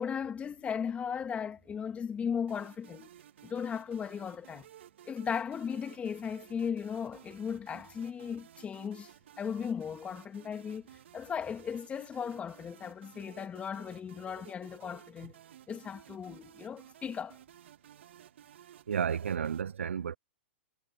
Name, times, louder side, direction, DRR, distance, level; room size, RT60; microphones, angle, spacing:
voice 1, 0.0-3.1 3.4-4.7 5.1-10.9 11.1-15.4 15.7-17.4, left 7 dB, 20° left, 2.2 m, -37 dB
sound 1, 2.5-19.6, right 11 dB, 65° right, 1.8 m, -56 dB
voice 2, 18.9-20.2, right 7 dB, 90° right, 0.3 m, -32 dB
hypercardioid pair, 125°, 7 cm